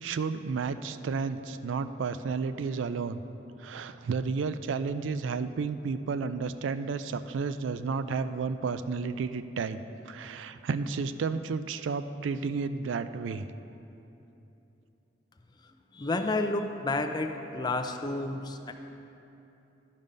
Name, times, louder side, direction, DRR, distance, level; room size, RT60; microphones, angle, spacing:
voice 1, 0.0-3.2 3.6-9.8 10.1-13.5, right 5 dB, 90° right, 12 dB, 0.4 m, -32 dB
voice 2, 15.9-18.7, left 2 dB, 25° left, 5 dB, 0.5 m, -30 dB
12.5 x 5.3 x 5.3 m, 2.9 s
head